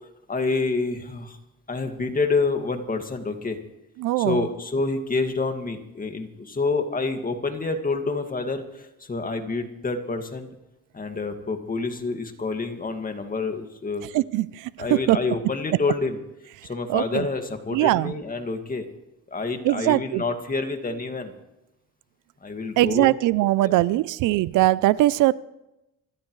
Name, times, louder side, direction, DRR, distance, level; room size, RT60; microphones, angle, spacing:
voice 1, 0.3-1.4 1.7-3.6 4.2-10.5 10.9-14.1 14.8-16.2 16.6-18.9 19.3-21.3 22.4-23.1 23.6-24.0, left 3 dB, 30° left, 5 dB, 2.1 m, -28 dB
voice 2, 4.0-4.5 14.1-14.7 15.1-15.2 16.9-17.3 17.7-18.1 19.6-20.2 22.8-25.3, right 17 dB, 90° right, 19 dB, 0.5 m, -21 dB
26.5 x 13.0 x 3.2 m, 0.92 s
cardioid pair, 90°, 30 cm